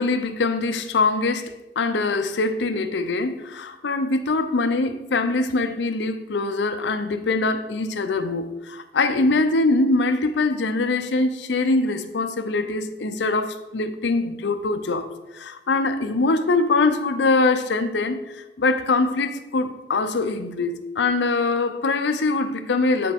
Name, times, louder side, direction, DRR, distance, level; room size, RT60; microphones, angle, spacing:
voice 1, 0.0-15.1 15.3-23.1, left 3 dB, 75° left, 0.6 m, -23 dB
9.7 x 4.6 x 3.6 m
head